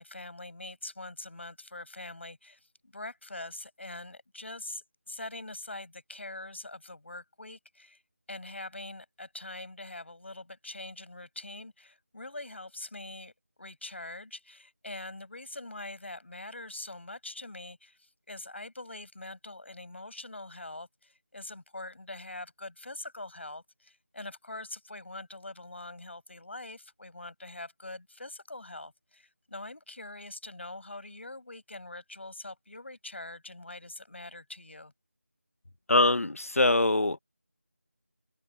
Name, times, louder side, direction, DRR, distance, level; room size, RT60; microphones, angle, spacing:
voice 1, 0.0-8.0 8.3-13.3 13.6-34.9, left 2 dB, 50° left, 6.5 m, -43 dB
voice 2, 35.9-37.2, left 2 dB, 70° left, 0.9 m, -23 dB
open air
figure-of-eight pair, 175°, 8 cm